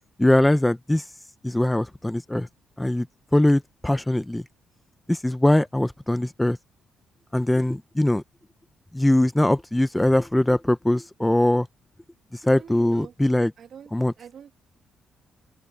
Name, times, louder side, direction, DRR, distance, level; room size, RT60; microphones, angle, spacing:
voice 1, 0.2-1.0 1.4-2.5 2.8-3.1 3.3-4.4 5.1-6.6 7.3-8.2 8.9-11.7 12.3-13.5 13.9-14.1, left 1 dB, 10° left, 0.7 m, -21 dB
voice 2, 12.5-13.1 13.6-13.9 14.2-14.5, right 8 dB, 60° right, 2.3 m, -44 dB
open air
cardioid pair, 90°, 0 cm